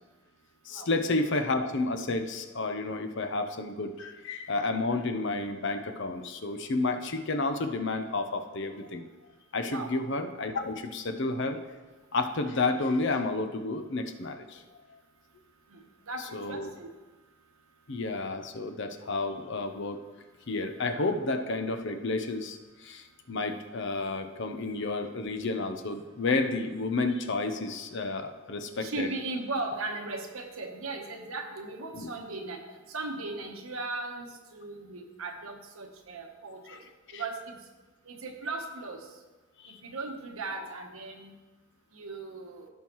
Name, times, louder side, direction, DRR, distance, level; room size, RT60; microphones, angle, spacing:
voice 1, 0.7-9.0 9.5-11.6 12.1-14.6 14.9-15.0 16.3-16.7 17.9-20.0 20.5-29.1 31.9-32.1 36.7-36.8 37.1-37.2 39.6-39.8, left 3 dB, 60° left, 7 dB, 0.7 m, -31 dB
voice 2, 16.1-16.9 28.8-32.6 32.9-36.8 37.1-37.6 38.1-39.1 39.7-41.3 41.9-42.7, right 3 dB, 85° right, 3 dB, 1.2 m, -37 dB
15.5 x 5.6 x 3.1 m, 1.2 s
head